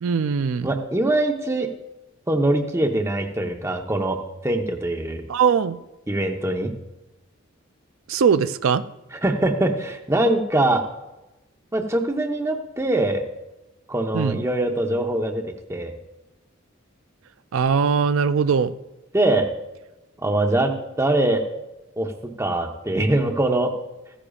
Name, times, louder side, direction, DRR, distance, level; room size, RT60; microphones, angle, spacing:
voice 1, 0.0-0.7 5.3-5.8 8.1-8.8 14.1-14.4 17.5-18.7, right 6 dB, 90° right, 12 dB, 0.4 m, -20 dB
voice 2, 0.6-1.7 2.3-4.2 4.4-5.2 6.1-6.7 9.2-10.8 11.7-13.2 13.9-15.4 15.7-15.9 19.1-19.5 20.2-21.4 22.0-23.7, right 1 dB, 15° right, 4 dB, 0.8 m, -22 dB
15.5 x 10.0 x 2.4 m, 1.0 s
head